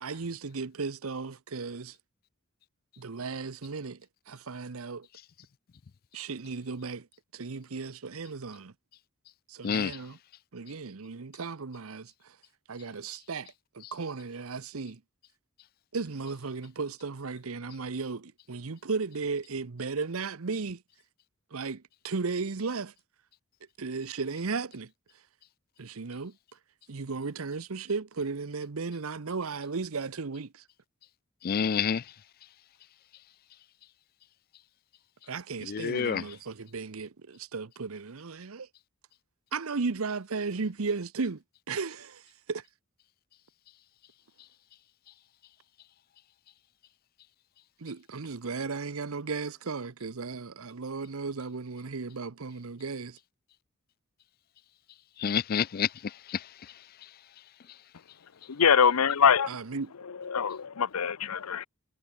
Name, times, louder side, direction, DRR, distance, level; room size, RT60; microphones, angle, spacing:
voice 1, 0.0-2.0 3.0-4.0 4.3-5.1 6.1-7.1 7.3-8.7 9.5-10.2 10.5-12.3 12.7-15.0 15.9-20.8 21.5-22.9 23.8-24.9 25.8-26.4 26.9-30.6 35.3-38.7 39.5-42.2 42.5-42.6 47.8-53.2 59.5-59.9, right 4 dB, 75° right, 0.8 m, -35 dB
voice 2, 31.4-32.0 35.7-36.2 55.2-55.9, left 7 dB, 45° left, 0.4 m, -27 dB
voice 3, 58.5-59.5 60.3-61.7, left 7 dB, 85° left, 0.7 m, -23 dB
head